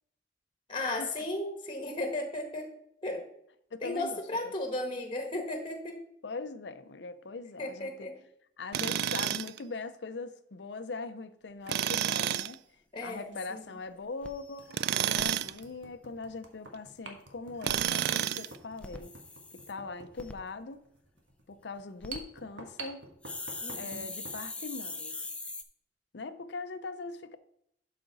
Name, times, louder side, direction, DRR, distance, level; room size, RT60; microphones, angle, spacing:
voice 1, 0.7-2.7 3.0-3.2 3.8-6.0 7.6-8.1 12.9-13.8 23.6-24.1, left 2 dB, 30° left, 4 dB, 1.3 m, -35 dB
voice 2, 3.7-4.5 6.2-8.1 8.6-12.6 13.0-19.2 19.5-20.8 21.5-23.1 23.8-25.3 26.1-27.4, left 3 dB, 70° left, 12 dB, 0.6 m, -41 dB
Tools, 8.7-9.6 11.7-12.5 14.7-15.6 17.6-18.6, right 10 dB, 60° right, 0.3 m, -30 dB
sound 1, 11.6-11.8 13.3-13.4 13.9-14.0 14.6-24.4, right 3 dB, 85° right, 1.4 m, -49 dB
sound 2, 13.1-13.2 13.6-13.7 13.9-14.0 14.2-15.2 17.5-19.7 20.2-20.3 21.8-22.2 23.2-25.6, left 3 dB, 5° left, 0.5 m, -42 dB
11.5 x 5.1 x 4.0 m, 0.73 s
head